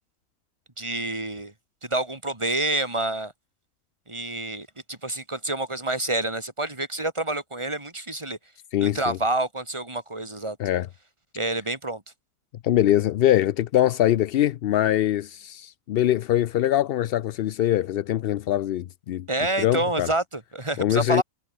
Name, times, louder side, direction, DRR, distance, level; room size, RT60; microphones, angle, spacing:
voice 1, 0.8-1.5 1.8-3.3 4.1-8.4 8.8-10.6 11.3-12.0 19.3-21.2, right 2 dB, 20° right, 2.6 m, -28 dB
voice 2, 8.7-9.2 10.6-10.9 12.6-19.3 19.6-20.1 20.8-21.2, left 12 dB, 65° left, 0.6 m, -23 dB
omnidirectional pair, 1.4 m